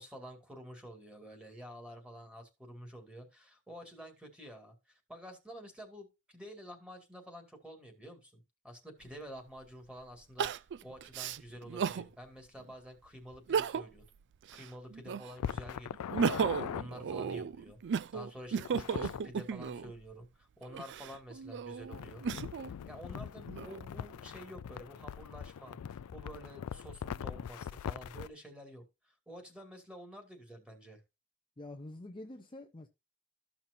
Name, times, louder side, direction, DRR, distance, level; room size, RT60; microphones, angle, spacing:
voice 1, 0.0-14.0 14.5-22.2 22.8-31.0, equal, 5° right, 2.2 m, -49 dB
Crying sobbing, 9.0-9.1 10.4-12.1 12.6-12.7 13.4-14.1 14.4-15.5 15.9-19.9 20.6-22.7 23.3-24.1, right 6 dB, 55° right, 0.4 m, -35 dB
sound 1, 15.4-16.8 18.6-19.2 21.9-28.3, left 8 dB, 80° left, 0.4 m, -41 dB
voice 2, 31.6-32.9, left 2 dB, 20° left, 0.7 m, -46 dB
14.0 x 5.9 x 2.7 m
head